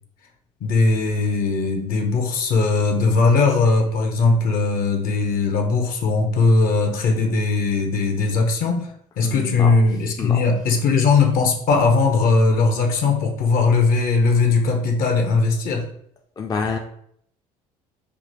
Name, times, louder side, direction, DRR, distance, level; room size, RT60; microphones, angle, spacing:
voice 1, 0.6-8.9 9.2-15.9, left 4 dB, 65° left, 3 dB, 0.9 m, -19 dB
voice 2, 9.2-9.7 10.2-10.4 16.4-16.8, left 5 dB, 25° left, 3 dB, 0.4 m, -27 dB
5.0 x 2.1 x 3.0 m, 0.67 s
supercardioid pair, 85°, 16 cm